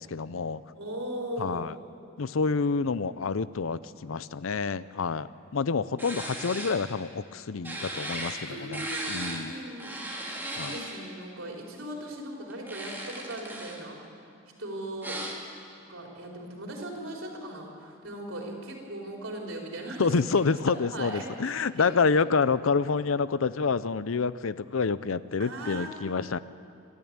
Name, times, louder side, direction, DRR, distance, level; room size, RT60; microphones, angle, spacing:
voice 1, 0.0-0.6 1.4-1.7 2.2-9.5 10.6-10.8 20.0-26.4, left 4 dB, 75° left, 16 dB, 0.6 m, -28 dB
voice 2, 0.7-1.7 8.5-14.0 14.6-15.2 15.9-20.1 20.7-22.3 25.4-26.4, right 1 dB, 75° right, -1 dB, 4.3 m, -39 dB
sound 1, 6.0-6.8 7.6-8.4 8.7-9.4 9.8-11.0 12.5-13.8 15.0-15.3, right 1 dB, 10° right, 2.9 m, -36 dB
28.0 x 12.5 x 8.8 m, 2.5 s
head